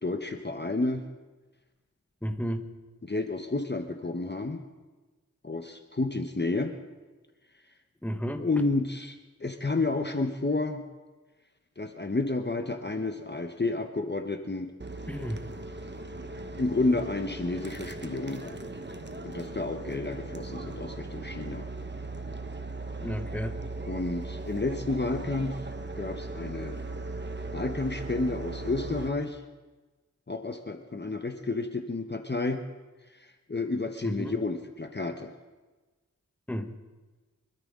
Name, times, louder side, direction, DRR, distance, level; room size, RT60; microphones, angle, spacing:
voice 1, 0.0-1.1 3.0-4.6 5.4-6.7 8.4-10.8 11.8-14.7 16.6-18.6 19.2-21.6 23.9-25.7 26.0-26.8 27.5-29.4 30.3-32.7 33.1-35.3, left 3 dB, 35° left, 6 dB, 1.0 m, -31 dB
voice 2, 2.2-2.7 8.0-8.5 15.1-15.4 23.0-23.6 34.0-34.3 36.5-36.7, equal, 5° left, 7 dB, 1.3 m, -32 dB
sound 1, 14.8-29.1, right 2 dB, 35° right, 1.2 m, -38 dB
25.0 x 13.0 x 3.7 m, 1.3 s
wide cardioid pair, 55°, 31 cm